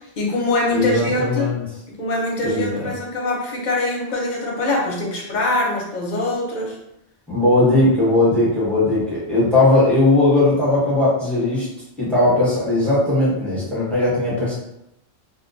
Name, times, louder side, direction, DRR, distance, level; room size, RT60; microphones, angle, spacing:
voice 1, 0.2-1.5 1.9-6.8, left 2 dB, 50° left, -2 dB, 0.7 m, -23 dB
voice 2, 0.7-1.6 2.4-2.9 7.3-11.7 12.0-14.5, left 2 dB, ahead, -9 dB, 0.8 m, -18 dB
2.2 x 2.2 x 2.5 m, 0.84 s
omnidirectional pair, 1.1 m